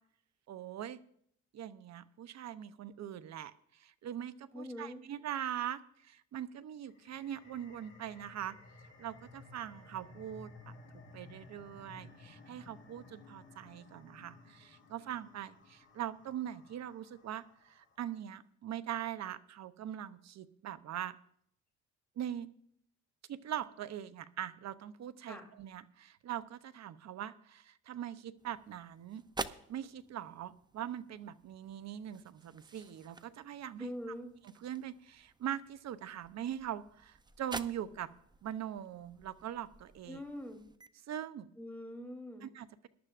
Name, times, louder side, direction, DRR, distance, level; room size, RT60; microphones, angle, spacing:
voice 1, 0.5-1.0 1.5-8.6 9.0-10.7 11.1-21.2 22.2-22.5 23.3-29.2 29.7-33.9 34.6-38.1 38.4-40.2 41.1-41.5 42.4-42.9, right 10 dB, 60° right, 14 dB, 0.8 m, -42 dB
voice 2, 4.5-5.0 25.3-25.5 33.8-34.3 40.1-40.6 41.6-42.5, equal, 5° left, 1 dB, 3.2 m, -43 dB
sound 1, 6.8-18.0, left 3 dB, 40° left, 2.3 m, -56 dB
sound 2, 28.4-40.9, right 3 dB, 15° right, 0.6 m, -49 dB
21.0 x 11.0 x 2.5 m, 0.67 s
cardioid pair, 90°, 30 cm